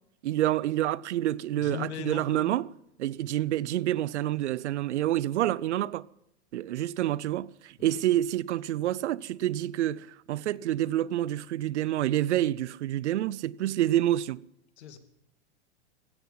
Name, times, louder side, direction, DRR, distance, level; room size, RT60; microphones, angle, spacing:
voice 1, 0.2-2.7 3.0-6.1 6.5-14.4, right 13 dB, 80° right, 0.7 m, -28 dB
voice 2, 1.6-2.6 7.8-8.0 14.8-15.0, left 9 dB, 75° left, 2.5 m, -39 dB
17.0 x 14.0 x 5.8 m
supercardioid pair, 150°, 34 cm